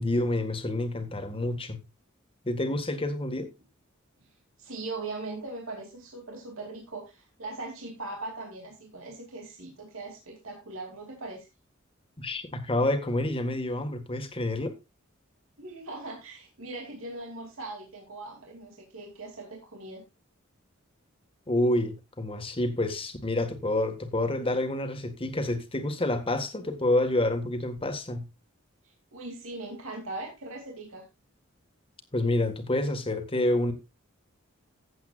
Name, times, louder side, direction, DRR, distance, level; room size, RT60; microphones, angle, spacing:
voice 1, 0.0-1.8 2.4-3.5 12.2-14.7 21.5-28.2 32.1-33.7, left 1 dB, 25° left, 1.7 m, -28 dB
voice 2, 4.6-11.5 15.6-20.0 29.1-31.0, right 2 dB, 90° right, 2.7 m, -40 dB
15.0 x 8.2 x 2.4 m
head